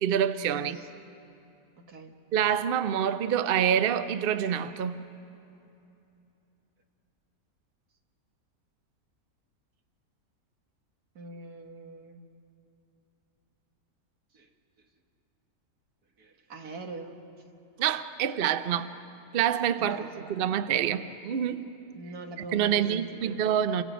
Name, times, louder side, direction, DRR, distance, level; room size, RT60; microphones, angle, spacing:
voice 1, 0.0-0.8 2.3-5.0 17.8-18.9 19.3-20.0 20.3-21.7 22.5-23.8, right 9 dB, 55° right, 0.6 m, -26 dB
voice 2, 0.5-0.9 1.9-2.1 11.2-12.2 14.3-14.5 16.2-17.2 19.8-20.3 21.9-23.4, right 2 dB, 75° right, 2.1 m, -43 dB
29.5 x 25.0 x 5.1 m
omnidirectional pair, 1.6 m